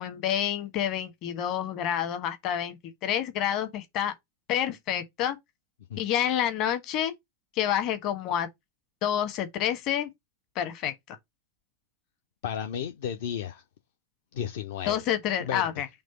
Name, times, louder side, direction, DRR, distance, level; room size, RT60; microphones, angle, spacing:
voice 1, 0.0-4.1 4.5-5.4 6.0-7.1 7.5-8.5 9.0-10.1 10.5-11.2 14.9-15.9, left 10 dB, 40° left, 1.4 m, -28 dB
voice 2, 12.4-13.6 14.3-15.0 15.4-15.7, left 8 dB, 55° left, 0.8 m, -33 dB
5.3 x 3.2 x 5.5 m
figure-of-eight pair, 90°, 0 cm